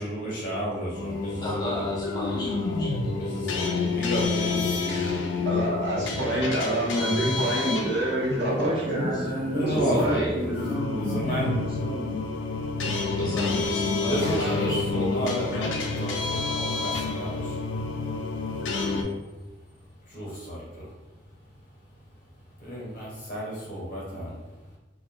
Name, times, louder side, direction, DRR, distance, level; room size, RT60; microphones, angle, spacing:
voice 1, 0.0-1.8 3.1-5.1 9.2-10.6 10.9-11.5 12.8-13.2 14.1-24.8, equal, 45° left, -6 dB, 0.9 m, -34 dB
sound 1, 0.9-19.0, left 4 dB, 90° left, 0.3 m, -29 dB
voice 2, 1.4-3.9 6.1-6.4 9.1-9.3 9.7-10.3 13.2-15.6, left 1 dB, 25° left, -6 dB, 0.6 m, -34 dB
voice 3, 5.4-9.1 9.6-10.2, right 1 dB, 65° right, -6 dB, 0.8 m, -26 dB
voice 4, 8.4-12.2, equal, 30° right, -3 dB, 0.4 m, -31 dB
2.2 x 2.0 x 2.9 m, 1.1 s
head